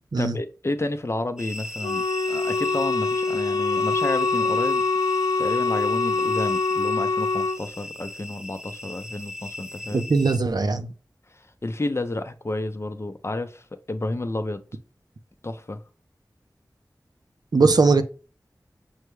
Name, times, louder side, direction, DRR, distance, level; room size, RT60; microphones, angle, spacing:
voice 1, 0.2-4.8 5.4-10.1 11.3-14.6 15.4-15.8, left 2 dB, 40° left, 0.6 m, -31 dB
sound 1, 1.4-10.4, left 2 dB, 10° right, 0.6 m, -38 dB
Wind instrument woodwind instrument, 1.8-7.6, left 3 dB, 80° left, 0.5 m, -24 dB
voice 2, 9.9-10.9 17.5-18.0, right 4 dB, 70° right, 0.6 m, -20 dB
6.3 x 2.2 x 3.1 m
wide cardioid pair, 55°, 7 cm